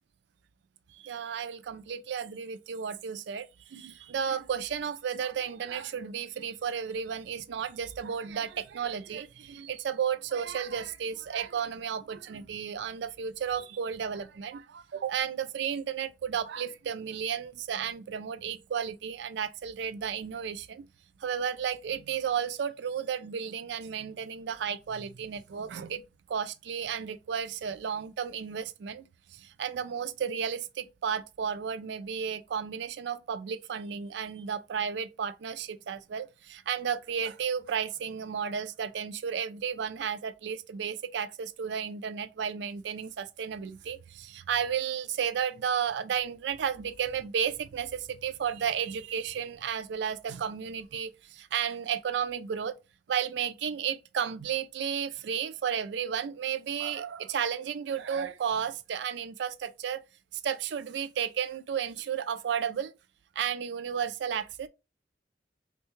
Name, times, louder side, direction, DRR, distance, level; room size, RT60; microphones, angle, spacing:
voice 1, 0.9-20.8 21.2-26.0 26.3-29.1 29.3-52.8 53.1-60.0 60.3-62.9 63.4-64.7, right 7 dB, 70° right, 0.4 m, -33 dB
3.5 x 2.2 x 3.0 m
head